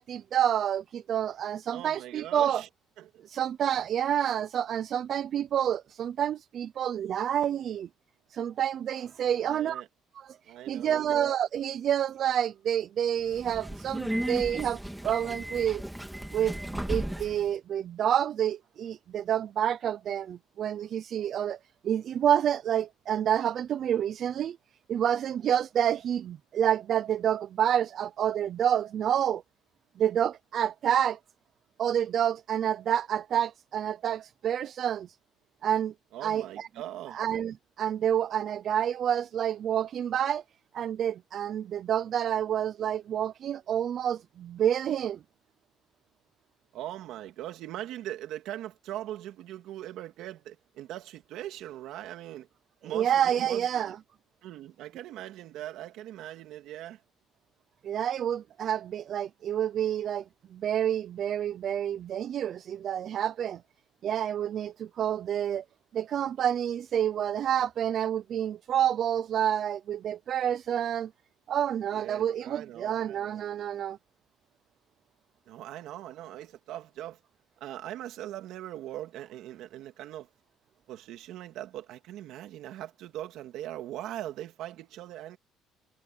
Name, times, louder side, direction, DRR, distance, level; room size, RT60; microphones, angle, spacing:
voice 1, 0.0-2.6 3.3-7.9 8.3-9.8 10.2-15.8 16.3-21.6 21.8-24.6 24.9-29.4 30.0-31.2 31.8-35.1 35.6-35.9 36.2-36.7 37.1-40.4 40.7-45.2 52.9-54.0 57.8-60.2 60.5-63.6 64.0-65.6 65.9-71.1 71.5-74.0, right 10 dB, 40° right, 0.5 m, -28 dB
voice 2, 1.7-2.7 3.0-3.2 9.3-9.9 10.5-11.2 36.1-37.2 46.7-52.5 52.8-53.9 54.4-57.0 71.9-73.4 75.5-77.2 77.6-80.3 80.9-85.4, right 13 dB, 60° right, 2.4 m, -41 dB
Subway metro underground, 13.2-17.5, right 1 dB, 5° right, 1.8 m, -35 dB
cardioid pair, 170°, 0 cm